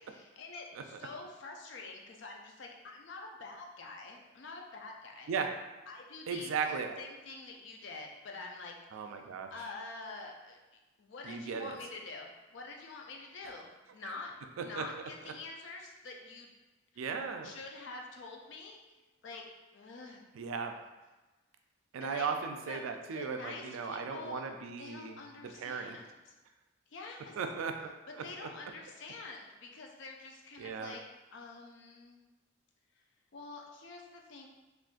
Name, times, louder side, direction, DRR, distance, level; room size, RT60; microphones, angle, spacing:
voice 1, 0.0-5.3 5.9-8.7 9.5-10.6 11.0-14.3 14.6-16.5 17.4-18.8 19.2-19.4 19.7-20.2 22.0-22.3 22.6-22.8 23.1-24.4 24.8-26.3 26.9-27.3 28.2-31.0 31.3-32.2 33.3-34.5, left 3 dB, 65° left, 1 dB, 0.4 m, -46 dB
voice 2, 6.3-7.0 8.9-9.5 11.2-11.8 14.0-14.1 14.6-14.8 15.2-15.3 17.0-17.5 20.3-20.7 21.9-26.0 27.4-27.7 28.1-28.2 30.6-30.9, right 5 dB, 85° right, 5 dB, 0.3 m, -37 dB
3.7 x 2.4 x 2.4 m, 1.2 s
head